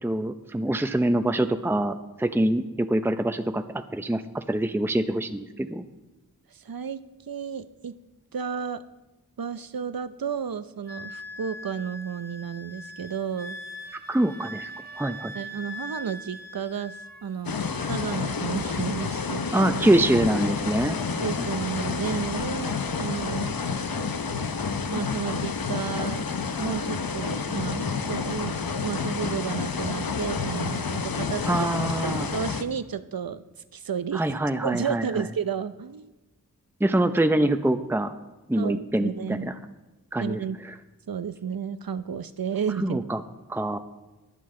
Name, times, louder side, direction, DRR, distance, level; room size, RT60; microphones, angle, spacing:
voice 1, 0.0-3.6 3.9-5.8 14.1-14.7 15.0-15.3 19.5-21.0 31.5-32.3 34.1-35.2 36.8-38.1 38.5-39.5 40.1-40.4 42.8-43.2 43.5-43.8, right 1 dB, 5° right, 8 dB, 0.7 m, -24 dB
voice 2, 6.5-7.0 7.3-7.9 8.3-8.8 9.4-13.6 15.3-19.5 21.2-23.6 24.9-26.2 26.6-31.7 32.0-33.4 33.7-34.4 34.6-36.1 38.6-39.5 40.2-40.6 41.1-43.0, right 7 dB, 80° right, 13 dB, 0.6 m, -32 dB
Wind instrument woodwind instrument, 10.9-17.3 17.6-18.2, equal, 25° right, 1.7 m, -41 dB
sound 1, 17.4-32.6, left 5 dB, 80° left, 0.8 m, -29 dB
21.5 x 7.7 x 3.8 m, 1.1 s
wide cardioid pair, 45°, 35 cm